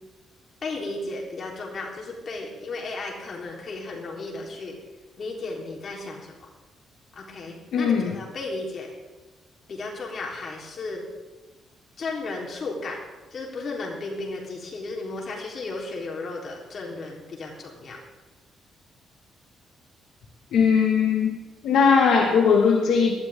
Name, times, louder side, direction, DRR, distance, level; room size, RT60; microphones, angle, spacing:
voice 1, 0.6-4.8 5.2-6.3 7.2-8.9 9.7-11.0 12.0-13.0 13.3-18.0, left 3 dB, 45° left, -1 dB, 3.7 m, -34 dB
voice 2, 7.7-8.1 20.5-21.3 21.6-23.2, left 6 dB, 75° left, 1 dB, 1.6 m, -19 dB
18.5 x 12.0 x 3.7 m, 1.2 s
cardioid pair, 90°, 0 cm